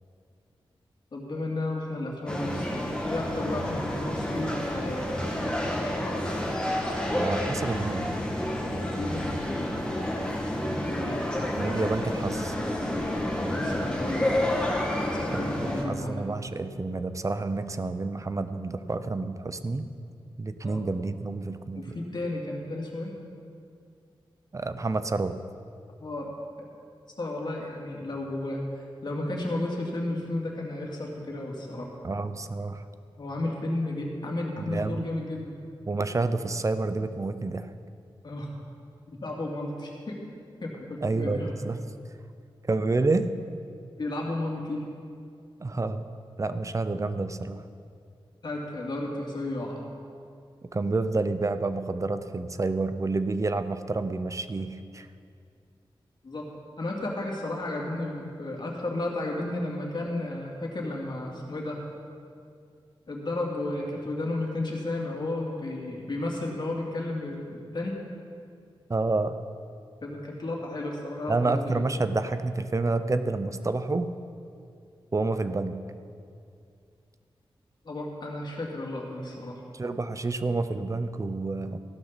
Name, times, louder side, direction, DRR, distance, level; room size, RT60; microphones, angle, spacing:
voice 1, 1.1-5.3 8.9-9.8 10.1-11.4 13.1-14.3 14.8-16.2 20.6-20.8 21.7-23.1 26.0-26.3 26.6-26.7 27.2-31.9 33.2-35.6 38.2-38.5 39.1-40.2 40.6-41.5 43.9-44.9 48.4-49.8 56.2-56.4 56.8-61.8 63.1-67.9 70.0-71.9 77.8-79.6 81.7-81.8, left 2 dB, 55° left, -1 dB, 2.5 m, -33 dB
sound 1, 2.3-15.8, left 1 dB, 10° left, 2.0 m, -29 dB
voice 2, 7.2-8.1 11.6-12.6 15.3-19.9 20.4-22.0 24.5-25.4 32.0-32.8 34.6-35.1 35.9-37.7 41.0-41.8 42.6-43.3 45.6-46.0 46.4-47.6 50.7-55.1 68.9-69.4 71.3-74.1 75.1-75.8 79.7-81.8, right 3 dB, 35° right, 11 dB, 0.6 m, -29 dB
15.0 x 12.0 x 4.1 m, 2.4 s
wide cardioid pair, 75°, 9 cm